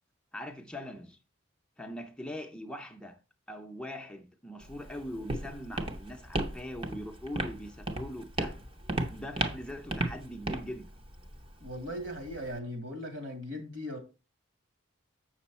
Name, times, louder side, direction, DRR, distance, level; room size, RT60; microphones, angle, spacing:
voice 1, 0.3-1.2 1.8-3.2 3.5-8.6 9.1-10.9, left 1 dB, 5° left, 0.6 m, -41 dB
Walk footsteps, 4.6-12.6, right 2 dB, 25° right, 0.8 m, -36 dB
voice 2, 11.6-14.0, equal, 65° right, 2.6 m, -38 dB
7.7 x 6.3 x 4.2 m
head